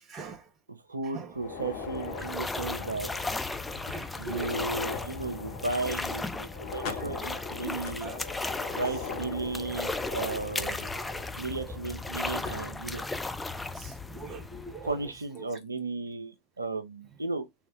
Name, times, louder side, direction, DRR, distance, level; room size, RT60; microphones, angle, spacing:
voice 1, 0.1-0.5 1.1-1.3 3.9-4.5 7.0-7.3 8.0-8.2 9.7-10.0 10.7-10.8 11.6-11.8 12.4-12.5 13.7-15.0 15.4-15.5, right 3 dB, 25° right, 0.7 m, -42 dB
voice 2, 0.7-3.2 4.2-8.1 8.7-10.9 11.4-13.0 14.8-17.5, right 3 dB, 80° right, 0.5 m, -35 dB
sound 1, 1.3-12.1 12.4-12.5 13.3-13.4 13.9-14.0 15.3-15.6, left 5 dB, 45° left, 1.0 m, -41 dB
sound 2, 1.4-15.2, left 3 dB, 5° left, 0.4 m, -36 dB
3.5 x 3.1 x 3.2 m
figure-of-eight pair, 90°, 0 cm